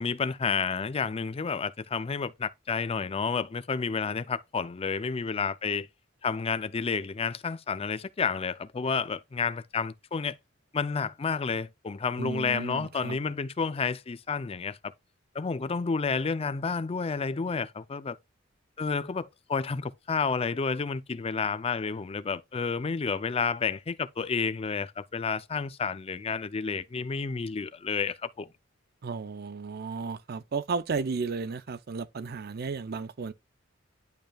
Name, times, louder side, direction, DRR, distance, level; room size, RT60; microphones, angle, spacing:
voice 1, 0.0-5.9 6.2-10.4 10.7-14.8 15.3-18.2 18.8-28.5, left 5 dB, 30° left, 0.4 m, -30 dB
voice 2, 12.2-13.2 29.0-33.3, right 4 dB, 55° right, 0.5 m, -34 dB
10.5 x 5.2 x 2.3 m
head